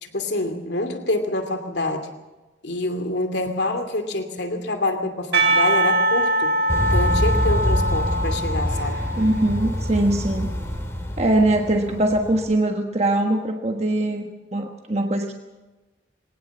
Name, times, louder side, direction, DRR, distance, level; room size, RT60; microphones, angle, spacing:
voice 1, 0.0-2.1 2.6-6.6 6.8-9.0 11.9-12.0, left 2 dB, 65° left, 7 dB, 2.6 m, -26 dB
Percussion / Church bell, 5.3-10.3, right 1 dB, 60° right, 4.8 m, -23 dB
sound 1, 6.7-12.5, equal, 15° left, 2.3 m, -25 dB
voice 2, 9.2-10.5 11.2-15.3, right 1 dB, 35° right, 3 dB, 1.4 m, -22 dB
21.0 x 18.5 x 7.2 m, 1.1 s
head